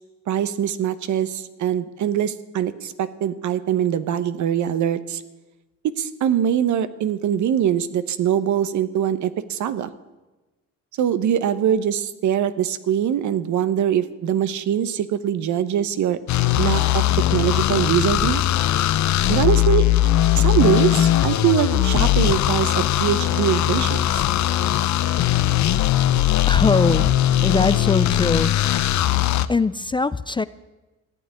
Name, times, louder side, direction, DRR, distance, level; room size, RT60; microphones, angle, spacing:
voice 1, 0.3-5.2 6.0-9.9 11.0-16.2 16.6-17.0 17.3-18.4 19.3-19.8 20.3-24.2, right 9 dB, 70° right, 13 dB, 1.1 m, -22 dB
sound 1, 16.3-29.5, left 13 dB, 70° left, 0.7 m, -19 dB
voice 2, 26.5-27.2 27.4-28.6 29.5-30.5, left 3 dB, 15° left, 16 dB, 0.4 m, -21 dB
15.0 x 9.0 x 9.7 m, 1.1 s
cardioid pair, 90°, 30 cm